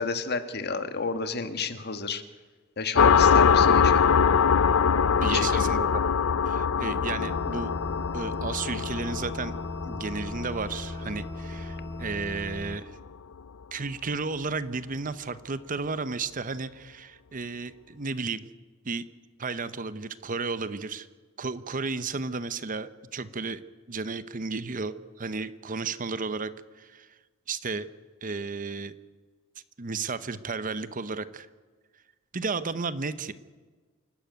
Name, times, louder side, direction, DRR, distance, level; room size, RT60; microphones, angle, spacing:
voice 1, 0.0-2.2 2.8-4.1 5.2-5.8, left 4 dB, 50° left, 10 dB, 1.6 m, -31 dB
sound 1, 3.0-12.2, left 6 dB, 80° left, 0.6 m, -23 dB
voice 2, 5.2-6.0 6.4-7.7 8.1-9.5 9.8-12.9 13.7-18.5 18.8-19.0 19.4-21.1 21.4-23.6 23.9-27.1 27.5-27.9 28.2-28.9 29.8-31.5 32.3-33.3, right 4 dB, 40° right, 14 dB, 0.9 m, -33 dB
sound 2, 7.2-12.8, left 1 dB, 15° left, 0.8 m, -38 dB
27.5 x 12.0 x 9.3 m, 1.4 s
head